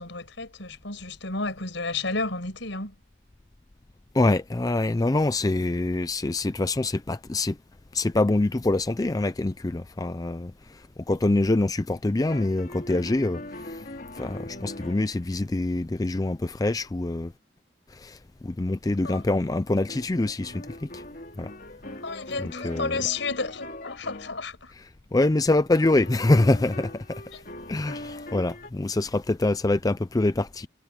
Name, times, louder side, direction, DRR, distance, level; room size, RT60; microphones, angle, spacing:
voice 1, 0.0-2.9 19.0-19.2 21.8-24.7 27.3-27.4, left 3 dB, 70° left, 5.6 m, -32 dB
voice 2, 4.1-7.6 7.9-13.8 14.1-17.3 17.9-21.0 21.4-21.5 22.4-23.0 25.1-27.4 27.7-30.7, left 2 dB, 20° left, 0.4 m, -25 dB
sound 1, 12.3-15.3 19.1-19.2 19.9-24.5 25.9-28.7, left 1 dB, 45° left, 3.6 m, -41 dB
head